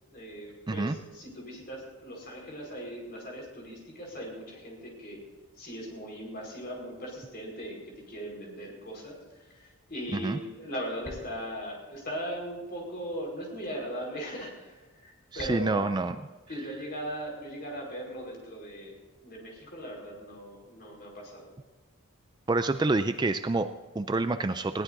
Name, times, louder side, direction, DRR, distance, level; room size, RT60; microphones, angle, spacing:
voice 1, 0.1-5.2 5.6-15.8 16.5-21.5, equal, 45° left, -1 dB, 4.7 m, -39 dB
voice 2, 15.3-16.2 22.5-24.8, right 3 dB, 20° right, 10 dB, 0.3 m, -28 dB
20.5 x 16.0 x 2.7 m, 1.2 s
head